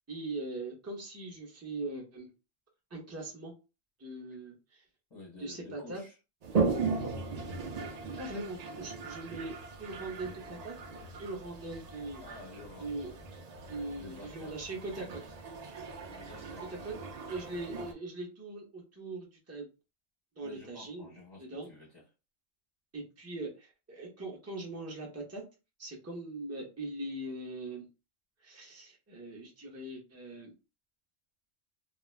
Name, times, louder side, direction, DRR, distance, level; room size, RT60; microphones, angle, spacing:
voice 1, 0.1-2.3 2.9-3.5 4.0-4.8 5.4-6.0 7.0-7.1 8.2-10.7 11.2-12.2 12.8-13.1 13.7-15.2 16.8-16.9 17.3-19.7 20.4-21.1 21.4-21.7 22.9-25.4 25.8-27.9 28.4-30.5, right 2 dB, 15° right, 0.6 m, -41 dB
voice 2, 5.1-6.2 6.5-7.1 12.2-12.9 14.0-14.6 16.1-16.7 20.4-22.0, left 2 dB, 25° left, 0.8 m, -51 dB
Toilet flush, 6.4-17.9, right 4 dB, 60° right, 0.4 m, -37 dB
2.4 x 2.1 x 3.1 m
omnidirectional pair, 1.2 m